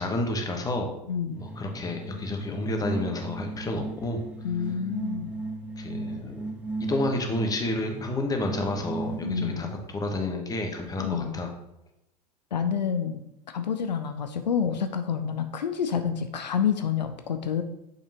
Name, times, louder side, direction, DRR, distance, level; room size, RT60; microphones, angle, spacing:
voice 1, 0.0-1.0 1.3-4.2 5.8-6.4 6.8-11.5, left 2 dB, 15° left, 3 dB, 1.1 m, -30 dB
voice 2, 1.1-1.4 4.4-5.3 9.2-9.7 11.0-11.4 12.5-13.2 13.5-17.6, left 7 dB, 85° left, 8 dB, 0.5 m, -28 dB
sound 1, 1.3-9.9, right 2 dB, 5° right, 0.8 m, -36 dB
6.7 x 5.4 x 2.9 m, 0.86 s
hypercardioid pair, 90°, 21 cm